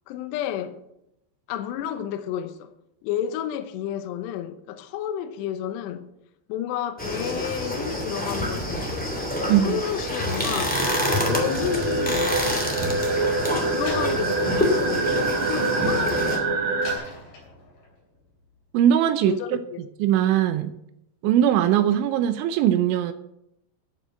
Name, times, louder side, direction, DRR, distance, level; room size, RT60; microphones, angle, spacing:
voice 1, 0.1-0.8 1.5-2.7 3.0-6.1 6.5-9.1 9.4-10.8 11.3-12.4 13.7-16.6 19.2-19.8, left 10 dB, 75° left, 2.7 m, -31 dB
sound 1, 7.0-16.4, left 1 dB, 5° left, 0.9 m, -27 dB
voice 2, 9.5-9.8 18.7-19.6 20.0-20.7 21.2-23.1, right 10 dB, 80° right, 3.0 m, -20 dB
sound 2, 10.7-16.9, right 3 dB, 50° right, 1.8 m, -26 dB
Slam, 13.8-16.2 16.8-18.0, left 3 dB, 50° left, 6.0 m, -42 dB
14.0 x 6.1 x 7.4 m
omnidirectional pair, 5.6 m